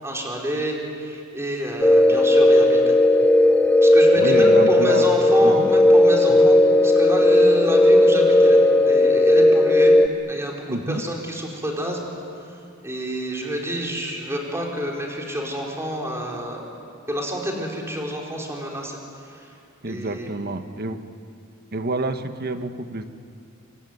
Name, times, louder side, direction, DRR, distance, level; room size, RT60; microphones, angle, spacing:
voice 1, 0.0-3.0 3.8-8.6 8.8-10.0 10.3-12.1 12.8-16.6 17.1-19.5 19.8-20.3, equal, 15° right, -1 dB, 4.5 m, -29 dB
sound 1, 1.8-10.1, left 1 dB, 5° left, 0.6 m, -15 dB
voice 2, 4.1-5.1 5.4-5.7 6.3-6.4 10.7-11.0 19.8-21.1 21.7-23.0, right 2 dB, 50° right, 8 dB, 1.3 m, -28 dB
25.5 x 24.5 x 9.6 m, 2.4 s
head